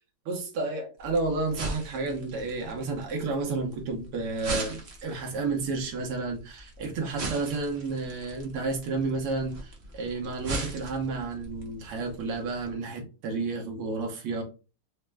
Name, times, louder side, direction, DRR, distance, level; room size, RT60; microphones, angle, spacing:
voice 1, 0.3-14.4, right 3 dB, 85° right, 1.9 m, -31 dB
sound 1, 1.0-12.7, right 2 dB, 60° right, 0.6 m, -40 dB
4.9 x 2.1 x 3.3 m
omnidirectional pair, 2.4 m